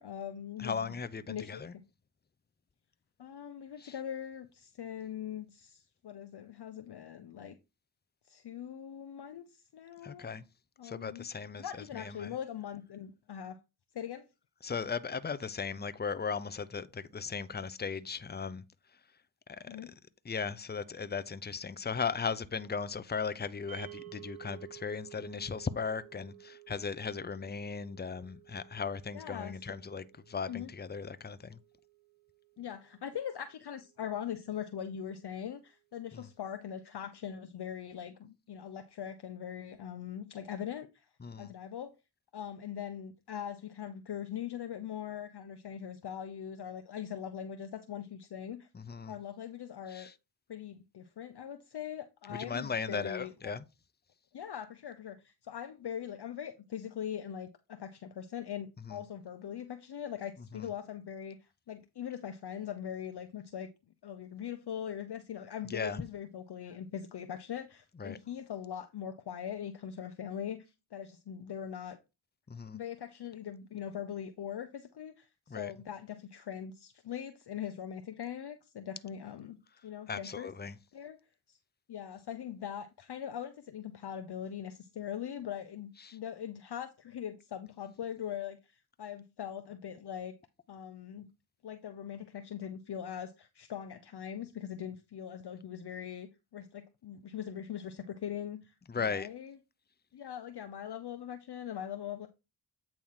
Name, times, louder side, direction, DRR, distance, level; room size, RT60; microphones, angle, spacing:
voice 1, 0.0-0.9 1.3-1.6 3.2-7.6 8.3-10.3 10.8-11.3 11.6-13.6 13.9-14.3 19.7-19.9 29.1-29.6 30.5-30.7 32.6-41.1 41.4-41.9 42.3-48.7 49.1-50.1 50.5-53.5 54.3-61.4 61.7-63.7 64.0-72.0 72.7-75.3 75.5-79.6 79.8-81.2 81.5-81.6 81.9-90.4 90.7-91.3 91.6-99.5 100.1-102.3, left 9 dB, 55° left, 0.8 m, -41 dB
voice 2, 0.6-1.8 3.8-3.9 10.0-10.4 10.8-11.6 11.9-12.3 14.6-18.6 19.5-19.6 20.2-31.6 36.1-36.2 41.2-41.5 48.7-49.2 49.9-50.1 52.3-53.7 58.9-59.0 60.5-60.7 65.7-66.0 68.0-68.2 72.5-72.8 75.5-75.7 80.1-80.7 86.0-86.2 98.9-99.3, left 5 dB, 20° left, 0.8 m, -37 dB
sound 1, 23.7-34.0, right 17 dB, 75° right, 0.8 m, -54 dB
8.6 x 3.1 x 5.7 m
supercardioid pair, 40°, 49 cm